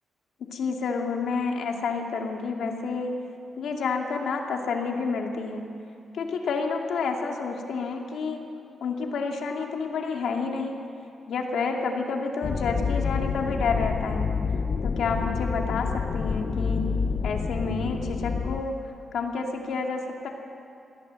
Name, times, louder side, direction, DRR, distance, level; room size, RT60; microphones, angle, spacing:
voice 1, 0.5-3.2 3.6-5.6 6.1-8.4 8.8-10.8 11.3-14.3 14.8-17.0 17.2-18.8 19.1-20.3, left 4 dB, 75° left, 2 dB, 2.4 m, -29 dB
sound 1, 12.4-18.6, left 5 dB, 45° left, 0.6 m, -28 dB
21.5 x 16.5 x 7.7 m, 2.6 s
wide cardioid pair, 140°, 0 cm